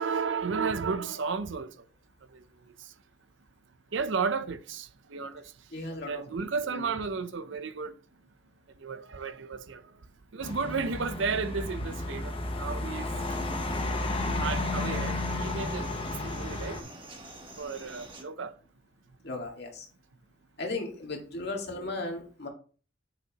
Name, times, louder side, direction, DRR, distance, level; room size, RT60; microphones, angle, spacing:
voice 1, 0.0-1.7 2.3-2.4 2.8-2.9 3.9-5.4 5.9-7.9 8.8-9.8 10.3-13.1 14.4-15.9 16.2-16.8 17.6-18.5, right 5 dB, 60° right, 0.6 m, -33 dB
voice 2, 5.7-6.5 6.7-6.8 19.2-19.9 20.6-22.5, left 2 dB, 55° left, 1.9 m, -36 dB
sound 1, 10.4-16.8, left 2 dB, 25° left, 0.9 m, -32 dB
sound 2, 13.2-18.2, right 2 dB, 25° right, 1.3 m, -46 dB
8.1 x 6.2 x 2.9 m
head